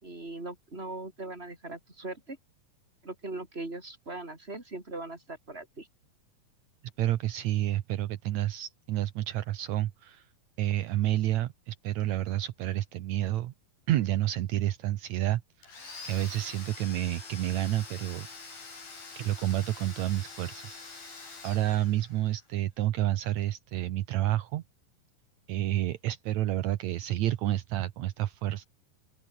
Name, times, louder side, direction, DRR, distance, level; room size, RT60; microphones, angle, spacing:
voice 1, 0.0-2.4 3.0-5.9, right 2 dB, 15° right, 5.2 m, -40 dB
voice 2, 7.0-10.3 10.6-13.5 13.9-15.7 16.0-18.3 19.2-20.8 21.4-24.6 25.5-28.6, right 14 dB, 70° right, 1.8 m, -29 dB
Domestic sounds home sounds, 15.6-22.4, left 4 dB, 70° left, 9.8 m, -45 dB
open air
omnidirectional pair, 4.3 m